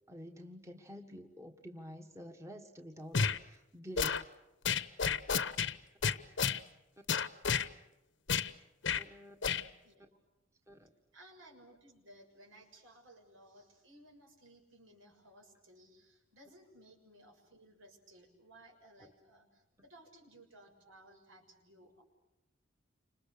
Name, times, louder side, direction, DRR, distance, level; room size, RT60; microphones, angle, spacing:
voice 1, 0.1-4.3 8.9-9.4 10.0-10.1 10.7-10.9, equal, 15° right, 4 dB, 1.6 m, -49 dB
sound 1, 3.1-3.4 4.0-4.2 4.6-5.7 6.0-6.6 7.1-7.7 8.3-8.5 8.8-9.0 9.4-9.6, left 6 dB, 65° left, 1.0 m, -31 dB
voice 2, 9.8-10.4 11.1-22.0, right 1 dB, 80° right, 2 dB, 6.9 m, -59 dB
30.0 x 27.0 x 6.8 m, 0.95 s
head